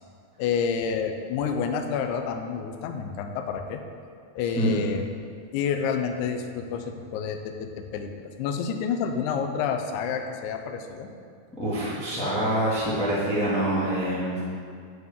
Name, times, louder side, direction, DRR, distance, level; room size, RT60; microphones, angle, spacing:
voice 1, 0.4-3.8 4.3-5.0 5.5-11.1, left 6 dB, 80° left, 5 dB, 1.8 m, -29 dB
voice 2, 11.6-14.4, right 1 dB, 5° left, -9 dB, 0.9 m, -25 dB
9.2 x 7.9 x 3.7 m, 2.3 s
omnidirectional pair, 4.1 m